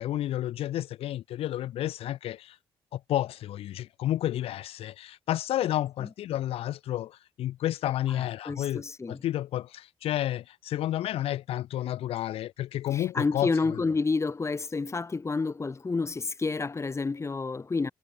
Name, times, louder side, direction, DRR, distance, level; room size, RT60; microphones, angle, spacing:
voice 1, 0.0-2.6 2.9-13.8, left 13 dB, 90° left, 1.4 m, -31 dB
voice 2, 8.1-9.2 12.9-17.9, left 4 dB, 30° left, 2.2 m, -29 dB
cardioid pair, 85°, 10 cm